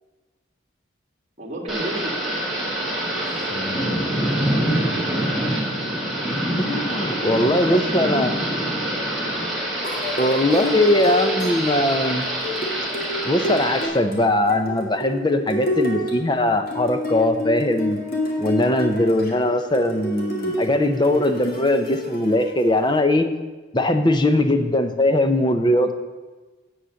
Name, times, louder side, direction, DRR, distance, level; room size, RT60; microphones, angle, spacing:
voice 1, 1.4-2.6 3.1-4.6 7.1-8.1 8.4-8.7 10.1-12.1 21.4-21.6 24.4-24.6, equal, 35° right, -1 dB, 1.9 m, -37 dB
Thunder / Rain, 1.7-13.9, right 1 dB, ahead, 2.0 m, -25 dB
voice 2, 3.5-3.9 6.6-8.3 10.2-12.2 13.2-18.0 18.4-23.3 23.7-25.9, left 1 dB, 20° left, 8 dB, 0.7 m, -20 dB
sound 1, 9.8-23.0, left 1 dB, 50° left, 2.0 m, -29 dB
9.8 x 7.4 x 6.4 m, 1.2 s
head